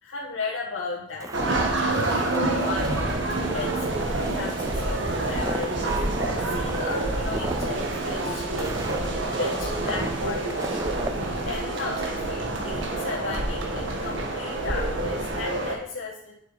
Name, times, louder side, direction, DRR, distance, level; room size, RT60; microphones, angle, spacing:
voice 1, 0.0-2.9 3.5-6.0 6.5-8.8 9.4-10.6 11.4-16.3, left 4 dB, 70° left, -5 dB, 1.6 m, -35 dB
Walk footsteps, 1.2-11.2, right 2 dB, 15° right, 0.4 m, -35 dB
sound 1, 1.3-15.7, right 2 dB, 65° right, 1.7 m, -27 dB
8.6 x 7.6 x 5.8 m, 0.71 s
head